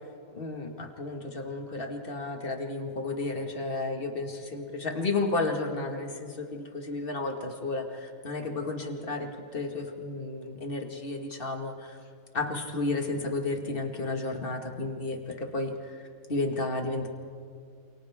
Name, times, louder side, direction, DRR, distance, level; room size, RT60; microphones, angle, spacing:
voice 1, 0.3-12.0 12.3-17.1, left 2 dB, 30° left, 3 dB, 1.9 m, -32 dB
28.5 x 28.5 x 3.7 m, 2.3 s
omnidirectional pair, 2.2 m